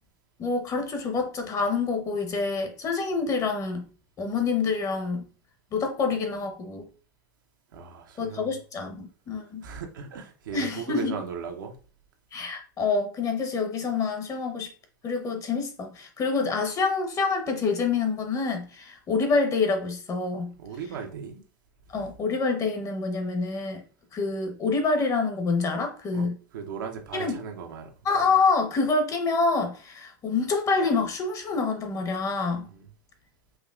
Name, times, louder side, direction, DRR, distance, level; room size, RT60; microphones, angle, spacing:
voice 1, 0.4-3.8 4.2-5.2 5.7-6.9 8.2-9.6 10.5-11.2 12.3-14.7 15.0-20.5 21.9-23.8 24.1-26.3 27.1-27.4 28.1-32.7, left 4 dB, 30° left, 1.0 m, -27 dB
voice 2, 7.7-8.5 9.6-11.8 20.6-21.5 21.9-22.1 26.1-28.3 32.6-32.9, right 6 dB, 80° right, 0.9 m, -38 dB
4.7 x 2.8 x 2.4 m
hypercardioid pair, 100°, 11 cm